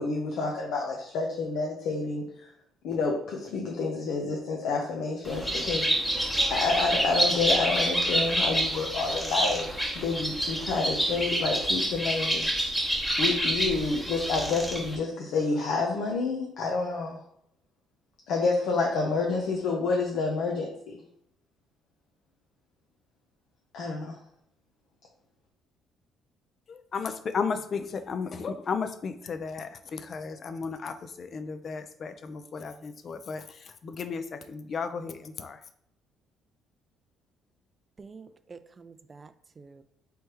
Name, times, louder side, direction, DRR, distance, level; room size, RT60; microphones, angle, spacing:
voice 1, 0.0-2.5 2.8-5.9 6.5-12.5 13.2-17.2 18.3-21.0 23.7-24.2, left 4 dB, 70° left, 0 dB, 0.8 m, -29 dB
Bird, 5.2-15.0, right 1 dB, 5° left, 0.8 m, -28 dB
voice 2, 26.7-35.6, left 5 dB, 45° left, 9 dB, 0.4 m, -34 dB
voice 3, 38.0-39.8, right 4 dB, 25° right, 11 dB, 0.3 m, -48 dB
3.4 x 3.2 x 4.5 m, 0.72 s
cardioid pair, 115°, 0 cm